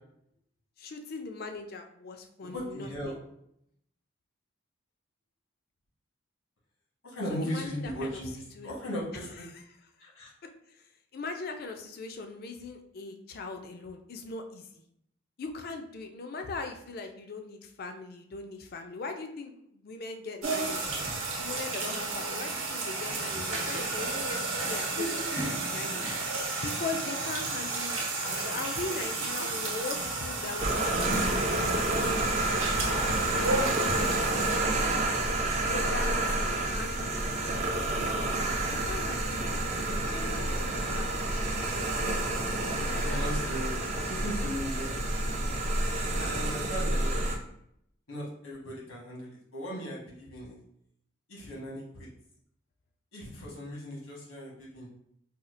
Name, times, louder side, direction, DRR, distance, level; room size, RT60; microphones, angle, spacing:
voice 1, 0.8-3.2 7.4-8.2 8.5-8.7 9.3-9.6 10.0-10.1 10.7-14.8 15.4-20.9 21.4-25.2 25.7-26.1 26.6-33.7 34.0-34.3 35.7-37.2 38.7-39.6 39.9-41.1 41.6-42.0 42.6-43.9, left 3 dB, 45° left, 5 dB, 0.4 m, -40 dB
voice 2, 2.4-3.2 7.0-9.4 10.0-10.3 43.0-43.8 44.1-45.0 46.1-47.2 48.1-50.6 51.3-52.1 53.1-54.9, equal, 85° left, -4 dB, 1.3 m, -37 dB
sound 1, 20.4-34.6, right 3 dB, 85° right, 0.8 m, -32 dB
sound 2, 30.6-47.4, right 2 dB, 35° right, 0.4 m, -29 dB
4.2 x 2.4 x 2.5 m, 0.73 s
head